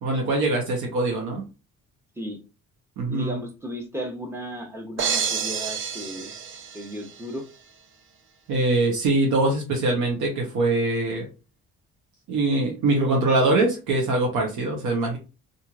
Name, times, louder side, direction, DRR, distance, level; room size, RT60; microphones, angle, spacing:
voice 1, 0.0-1.4 3.0-3.4 8.5-11.3 12.3-15.2, right 2 dB, 85° right, 0 dB, 0.8 m, -23 dB
voice 2, 3.1-6.3 6.7-7.5, equal, 10° right, 3 dB, 0.8 m, -35 dB
sound 1, 5.0-7.2, right 7 dB, 40° right, 0.5 m, -29 dB
2.9 x 2.6 x 2.4 m, 0.31 s
cardioid pair, 90°, 30 cm